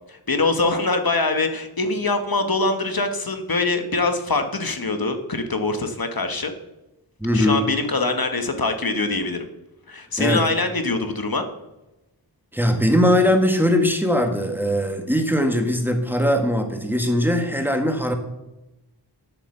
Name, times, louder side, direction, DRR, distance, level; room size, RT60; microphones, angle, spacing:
voice 1, 0.1-6.5 7.3-9.4 9.9-11.4, left 3 dB, 60° left, 7 dB, 1.2 m, -23 dB
voice 2, 7.2-7.6 10.2-10.4 12.5-18.1, equal, 5° right, 5 dB, 1.6 m, -20 dB
8.6 x 8.0 x 7.1 m, 0.98 s
wide cardioid pair, 65°, 41 cm